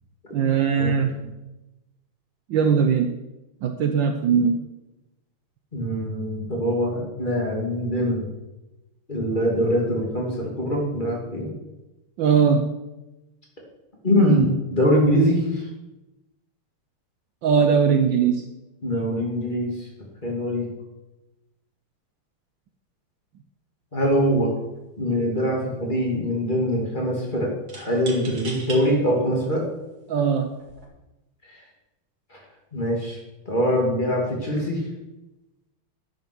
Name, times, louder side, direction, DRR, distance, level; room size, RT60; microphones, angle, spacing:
voice 1, 0.3-1.2 2.5-3.1 3.6-4.6 12.2-12.7 17.4-18.5 30.1-30.5, right 6 dB, 65° right, 6 dB, 1.3 m, -20 dB
voice 2, 5.7-8.3 9.1-11.5 14.0-15.7 18.8-19.9 20.2-20.7 23.9-24.5 25.0-29.6 31.4-31.6 32.3-32.4 32.7-33.2 33.5-34.8, equal, 20° left, -2 dB, 2.7 m, -23 dB
sound 1, 24.6-24.8 25.1-25.8 27.7-28.8 29.5-29.6 30.5-30.8, right 3 dB, 45° right, 2.4 m, -38 dB
10.5 x 8.0 x 6.1 m, 1.0 s
omnidirectional pair, 2.4 m